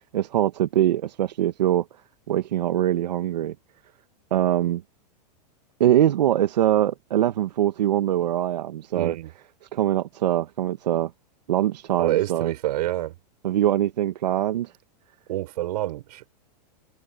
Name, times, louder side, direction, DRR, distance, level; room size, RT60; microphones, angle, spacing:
voice 1, 0.1-1.8 2.3-3.5 4.3-4.8 5.8-9.2 9.7-11.1 11.5-12.5 13.4-14.7, right 12 dB, 85° right, 1.7 m, -23 dB
voice 2, 8.9-9.3 12.0-13.2 15.3-16.3, right 15 dB, 70° right, 5.8 m, -27 dB
supercardioid pair, 135°, 21 cm